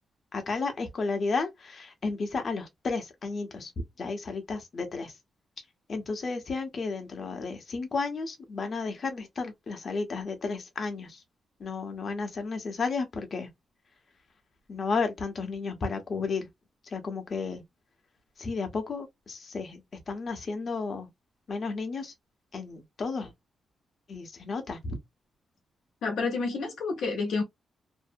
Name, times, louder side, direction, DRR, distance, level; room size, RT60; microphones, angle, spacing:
voice 1, 0.3-5.1 5.9-11.2 11.6-13.5 14.7-16.5 16.9-17.6 18.4-19.8 20.1-21.1 21.5-22.1 22.5-23.3 24.1-25.0, left 4 dB, 45° left, 0.8 m, -33 dB
voice 2, 26.0-27.4, left 4 dB, 90° left, 0.7 m, -29 dB
2.6 x 2.0 x 2.5 m
cardioid pair, 115°, 0 cm